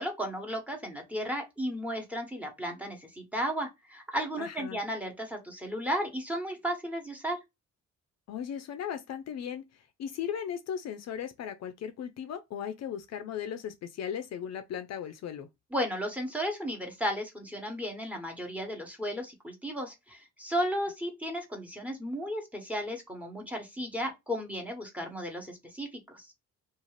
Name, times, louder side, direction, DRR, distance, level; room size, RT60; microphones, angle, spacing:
voice 1, 0.0-7.4 15.7-26.3, equal, 5° right, 1.0 m, -34 dB
voice 2, 4.4-4.8 8.3-9.6 10.0-15.5, left 8 dB, 60° left, 0.5 m, -37 dB
2.4 x 2.4 x 3.1 m
cardioid pair, 90°, 30 cm